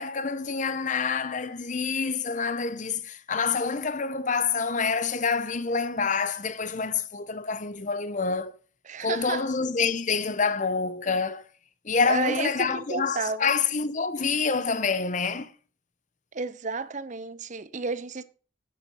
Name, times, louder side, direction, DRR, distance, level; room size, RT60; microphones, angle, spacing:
voice 1, 0.0-8.5 9.0-11.4 11.8-15.5, left 5 dB, 40° left, 0.8 m, -27 dB
voice 2, 8.9-9.5 12.1-13.5 16.3-18.2, right 4 dB, 40° right, 0.7 m, -31 dB
8.6 x 8.1 x 5.6 m
head